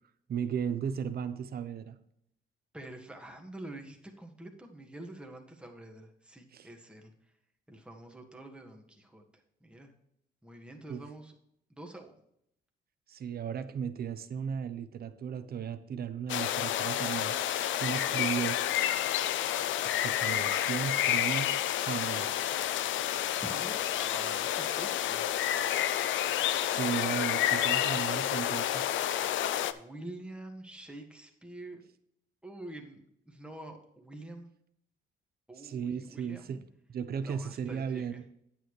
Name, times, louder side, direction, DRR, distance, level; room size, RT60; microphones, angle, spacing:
voice 1, 0.3-2.0 6.5-6.7 10.9-11.1 13.1-17.4 17.7-18.6 19.8-21.5 21.8-22.3 26.6-28.9 35.6-38.2, right 7 dB, 50° right, 11 dB, 0.8 m, -35 dB
voice 2, 2.7-7.1 7.7-9.9 10.4-11.3 11.7-12.1 17.9-18.5 23.4-25.3 29.7-31.8 32.4-34.5 35.5-36.6 37.2-38.2, right 1 dB, 5° right, 2 dB, 1.7 m, -47 dB
sound 1, 16.3-29.7, left 11 dB, 75° left, 0.5 m, -29 dB
9.0 x 8.6 x 3.2 m, 0.75 s
cardioid pair, 90°, 20 cm